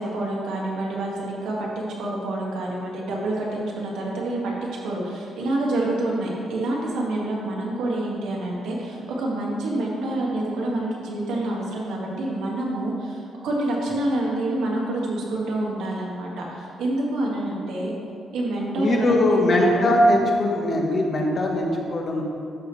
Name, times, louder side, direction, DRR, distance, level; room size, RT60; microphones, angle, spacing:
voice 1, 0.0-4.5 4.8-17.9 18.3-19.9, right 1 dB, 90° right, -3 dB, 1.9 m, -27 dB
voice 2, 18.8-22.2, left 1 dB, 35° left, 0 dB, 1.1 m, -20 dB
12.5 x 5.7 x 3.2 m, 2.6 s
cardioid pair, 160°, 0 cm